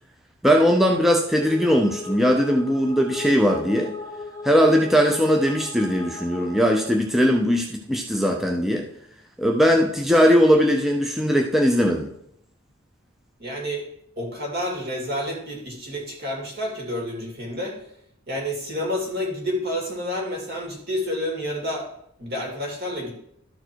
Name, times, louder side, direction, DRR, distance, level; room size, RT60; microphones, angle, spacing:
voice 1, 0.4-3.9 4.4-8.8 9.4-12.1, equal, ahead, 1 dB, 0.6 m, -19 dB
sound 1, 1.2-7.0, left 2 dB, 15° left, 1.0 m, -37 dB
voice 2, 13.4-13.8 14.2-17.8 18.3-21.9 22.2-23.1, left 1 dB, 55° right, 0 dB, 2.5 m, -29 dB
12.5 x 4.6 x 4.5 m, 0.73 s
head